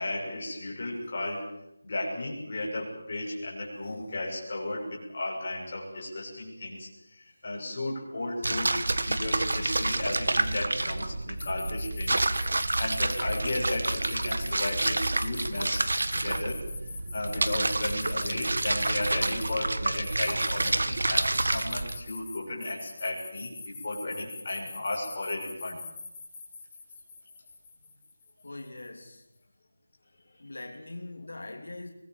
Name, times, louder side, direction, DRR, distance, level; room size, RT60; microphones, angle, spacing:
voice 1, 0.0-1.5 1.8-12.5 12.8-16.7 17.1-25.8, left 2 dB, 25° left, -4 dB, 6.7 m, -34 dB
sound 1, 8.4-22.0, right 2 dB, 65° right, 1.8 m, -29 dB
sound 2, 11.4-19.5 20.0-20.7 21.1-29.0, left 4 dB, 10° left, 3.7 m, -43 dB
voice 2, 28.4-29.2 30.4-31.9, left 2 dB, 75° left, 2 dB, 3.3 m, -41 dB
24.0 x 20.0 x 7.6 m, 0.83 s
figure-of-eight pair, 180°, 0 cm